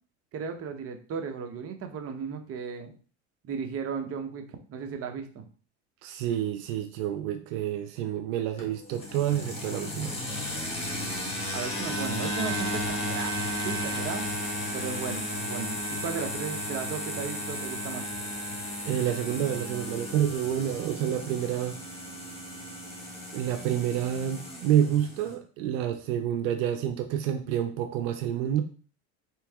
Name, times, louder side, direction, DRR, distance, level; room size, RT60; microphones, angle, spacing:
voice 1, 0.3-2.9 3.4-5.5 11.5-14.3 14.7-18.1, right 6 dB, 40° right, 5 dB, 0.8 m, -35 dB
voice 2, 6.0-10.1 18.9-21.8 23.3-28.6, right 10 dB, 75° right, 7 dB, 0.6 m, -28 dB
sound 1, 8.6-25.3, equal, 15° left, 1.6 m, -34 dB
3.6 x 3.0 x 3.4 m, 0.39 s
supercardioid pair, 110°, 37 cm